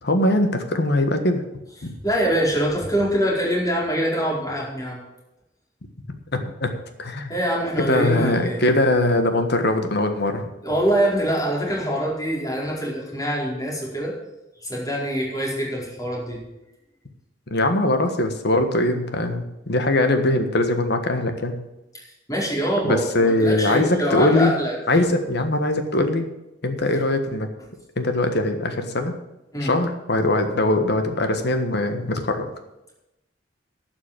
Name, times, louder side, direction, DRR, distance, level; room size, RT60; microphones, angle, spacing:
voice 1, 0.0-1.4 1.8-1.9 6.3-6.7 7.0-7.3 7.9-10.5 17.5-21.6 22.8-24.5 24.9-26.3 26.6-27.5 28.0-29.1 29.6-32.5, left 1 dB, 60° left, 7 dB, 1.5 m, -21 dB
voice 2, 2.0-5.0 7.3-8.6 10.6-14.1 14.6-16.4 21.9-24.7 29.5-29.7, equal, 20° left, -4 dB, 4.8 m, -24 dB
12.0 x 6.1 x 8.9 m, 0.95 s
head